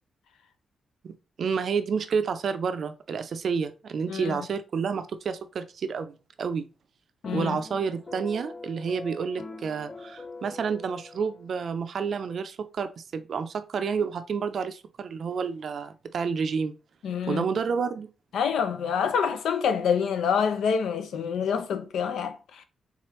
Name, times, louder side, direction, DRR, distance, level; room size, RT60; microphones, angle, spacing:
voice 1, 1.0-6.7 7.3-16.7 17.3-18.1, right 6 dB, 55° right, 0.4 m, -30 dB
voice 2, 4.1-4.5 7.2-7.6 17.0-17.4 18.3-22.6, left 7 dB, 85° left, 0.5 m, -27 dB
sound 1, 7.2-11.7, left 3 dB, 30° left, 0.4 m, -43 dB
3.7 x 3.0 x 3.0 m
cardioid pair, 130°, 0 cm